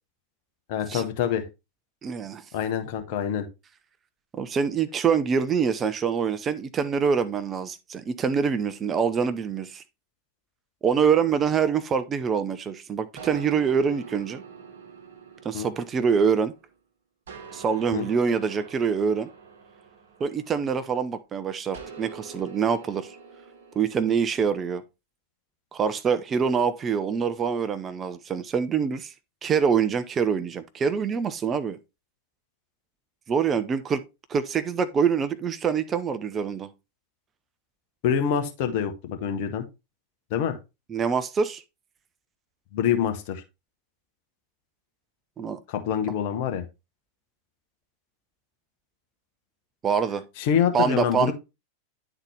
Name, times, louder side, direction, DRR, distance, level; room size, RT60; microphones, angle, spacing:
voice 1, 0.7-1.5 2.5-3.4 15.5-15.7 17.9-18.1 38.0-39.6 40.3-40.6 42.7-43.4 45.7-46.6 50.4-51.3, left 8 dB, 50° left, 1.1 m, -26 dB
voice 2, 2.0-2.4 4.3-9.8 10.8-14.4 15.4-16.5 17.5-19.3 20.2-23.2 23.8-24.8 25.7-29.1 29.4-31.8 33.3-34.0 34.3-36.7 40.9-41.6 45.4-45.6 49.8-50.2 50.7-51.3, right 6 dB, 25° right, 0.6 m, -25 dB
sound 1, 13.2-16.7 17.3-21.0 21.7-24.4, right 5 dB, 60° right, 1.1 m, -45 dB
9.8 x 4.0 x 3.3 m
figure-of-eight pair, 90°, 0 cm